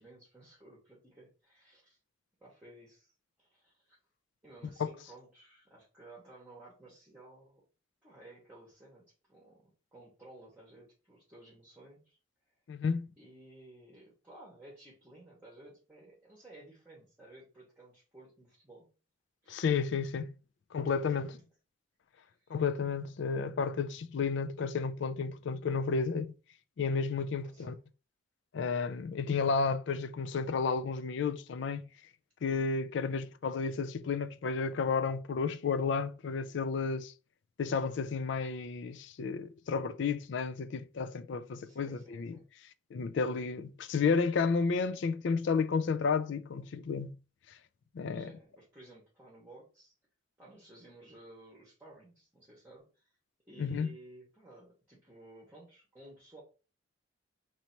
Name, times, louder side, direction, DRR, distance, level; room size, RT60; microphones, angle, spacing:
voice 1, 0.0-2.0 2.4-3.1 3.4-4.0 4.4-7.6 8.0-12.2 13.2-18.9 19.4-19.7 20.8-21.5 22.2-22.6 27.4-27.8 41.6-42.4 48.0-49.9 50.4-53.2 53.5-56.4, right 2 dB, 10° right, 1.2 m, -55 dB
voice 2, 12.7-13.1 19.5-20.4 20.7-21.3 22.5-26.3 26.8-27.7 28.5-31.8 32.4-37.1 37.6-42.4 42.9-47.2 47.9-48.3 53.6-53.9, left 5 dB, 60° left, 0.3 m, -32 dB
3.1 x 2.9 x 4.3 m
head